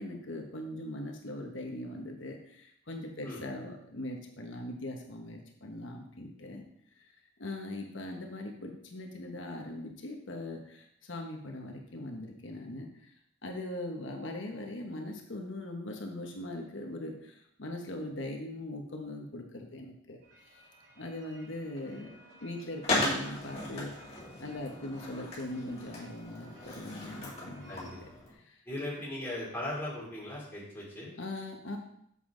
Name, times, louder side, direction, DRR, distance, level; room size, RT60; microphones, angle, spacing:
voice 1, 0.0-6.6 7.0-7.1 7.4-13.1 13.4-20.6 21.0-22.1 22.4-28.6 31.2-31.8, left 1 dB, 70° left, 2 dB, 1.1 m, -40 dB
sound 1, 20.2-28.0, equal, 90° right, 2.4 m, -56 dB
Skateboard, 22.8-28.3, left 1 dB, 30° left, 2.5 m, -37 dB
voice 2, 28.6-31.1, left 1 dB, 10° left, -7 dB, 3.1 m, -38 dB
7.5 x 6.9 x 3.8 m, 0.72 s
head